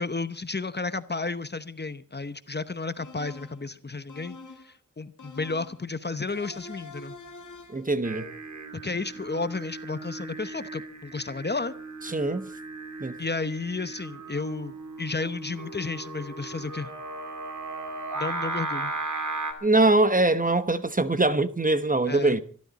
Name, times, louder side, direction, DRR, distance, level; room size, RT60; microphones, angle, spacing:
voice 1, 0.0-4.4 4.6-7.2 8.8-11.7 13.2-16.9 18.1-18.9 22.1-22.4, left 3 dB, 35° left, 0.9 m, -32 dB
sound 1, 3.0-3.7 4.1-4.7 5.2-5.8 6.3-7.9, left 3 dB, 75° left, 2.0 m, -45 dB
voice 2, 7.7-8.3 12.0-12.5 13.0-13.1 19.6-22.4, right 2 dB, 25° right, 1.0 m, -23 dB
Singing, 8.0-19.5, right 3 dB, 70° right, 2.6 m, -37 dB
24.5 x 12.0 x 4.1 m
wide cardioid pair, 60°, 31 cm